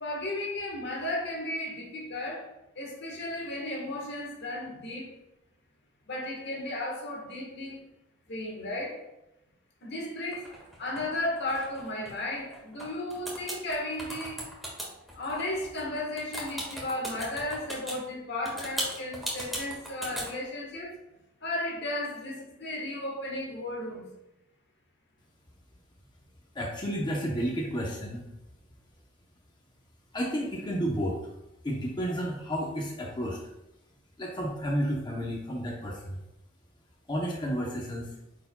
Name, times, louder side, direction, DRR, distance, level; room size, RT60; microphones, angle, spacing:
voice 1, 0.0-5.2 6.1-7.8 8.3-9.0 9.8-10.5 10.8-14.4 15.2-21.0 21.4-24.1, left 1 dB, 60° left, 1.4 m, -34 dB
sound 1, 10.3-12.9 13.1-18.0 18.5-20.3, equal, ahead, 1.7 m, -37 dB
voice 2, 26.5-28.2 30.1-31.3 31.6-33.4 34.2-36.2 37.1-38.1, equal, 25° left, 0.8 m, -31 dB
9.0 x 4.7 x 2.3 m
head